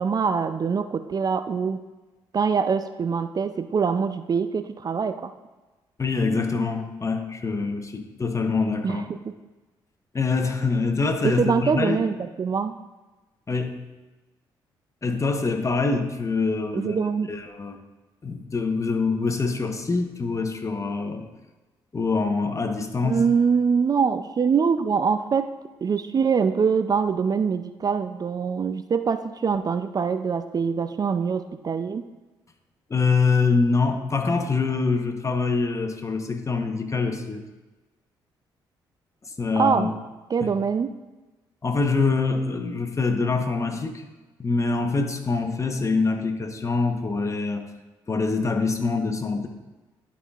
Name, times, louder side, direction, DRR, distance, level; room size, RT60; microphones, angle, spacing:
voice 1, 0.0-1.8 2.3-5.3 8.8-9.0 11.2-12.7 16.7-17.3 23.0-25.5 25.8-32.0 39.5-39.9 40.3-40.9, right 6 dB, 40° right, 11 dB, 0.4 m, -24 dB
voice 2, 6.0-9.1 10.1-12.0 13.5-13.8 15.0-17.8 18.2-21.3 21.9-23.2 32.9-37.4 39.2-39.9 40.4-40.5 41.6-44.0 44.4-47.7 48.1-49.5, left 4 dB, 30° left, 6 dB, 0.9 m, -25 dB
11.0 x 5.5 x 2.4 m, 1.2 s
supercardioid pair, 55°, 10 cm